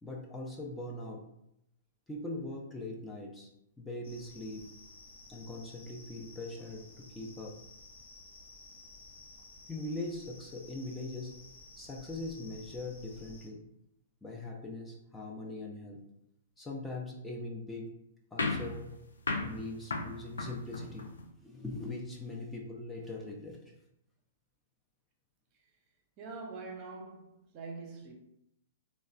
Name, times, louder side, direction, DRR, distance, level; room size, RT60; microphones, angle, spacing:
voice 1, 0.0-1.2 2.1-3.5 3.8-4.6 5.3-7.5 9.7-11.3 11.8-13.6 14.2-16.0 16.6-17.9 18.3-18.9 19.4-23.7, left 2 dB, 10° left, 0.4 m, -41 dB
sound 1, 4.0-13.5, left 2 dB, 70° left, 1.0 m, -54 dB
sound 2, 18.4-21.3, left 3 dB, 90° left, 0.3 m, -36 dB
voice 2, 26.2-28.1, right 4 dB, 40° right, 0.6 m, -44 dB
3.0 x 2.1 x 2.4 m
hypercardioid pair, 120°, 0 cm